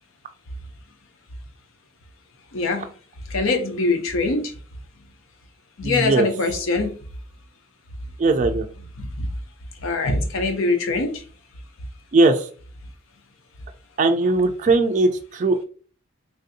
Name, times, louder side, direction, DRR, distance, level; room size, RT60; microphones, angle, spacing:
voice 1, 2.5-2.8 3.3-4.5 5.8-6.9 9.2-9.3 9.8-11.2, left 3 dB, 85° left, 0.7 m, -23 dB
voice 2, 5.8-6.3 8.2-8.7 12.1-12.5 14.0-15.6, right 3 dB, 35° right, 0.3 m, -19 dB
3.4 x 2.5 x 2.6 m
head